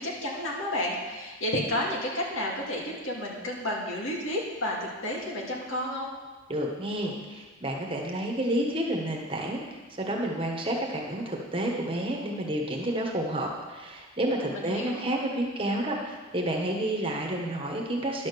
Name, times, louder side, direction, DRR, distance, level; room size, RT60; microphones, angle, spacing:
voice 1, 0.0-6.1 14.5-15.0, left 1 dB, 75° left, -2 dB, 2.3 m, -31 dB
voice 2, 6.5-9.6 10.0-18.3, right 1 dB, 25° right, 0 dB, 1.3 m, -30 dB
11.0 x 6.4 x 6.8 m, 1.3 s
head